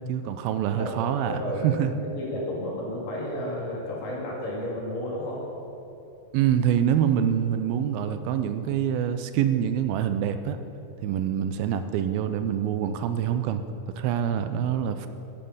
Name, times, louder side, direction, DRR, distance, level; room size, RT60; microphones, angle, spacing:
voice 1, 0.1-1.9 6.3-10.6 11.0-13.6 14.0-15.1, right 9 dB, 90° right, 10 dB, 2.5 m, -25 dB
voice 2, 1.3-5.5, left 1 dB, 65° left, -3 dB, 3.9 m, -32 dB
12.0 x 10.0 x 5.6 m, 2.9 s
omnidirectional pair, 4.2 m